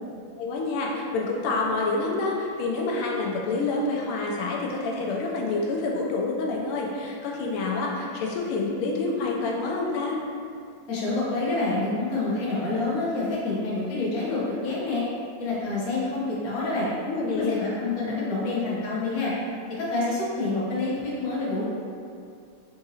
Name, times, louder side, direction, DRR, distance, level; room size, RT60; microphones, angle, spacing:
voice 1, 0.4-10.2 17.1-17.6, left 3 dB, 85° left, -1 dB, 1.5 m, -27 dB
voice 2, 10.9-15.0 15.4-16.9 17.3-19.3 19.8-21.6, left 2 dB, 55° left, -7 dB, 1.1 m, -27 dB
4.8 x 2.7 x 2.7 m, 2.4 s
omnidirectional pair, 2.3 m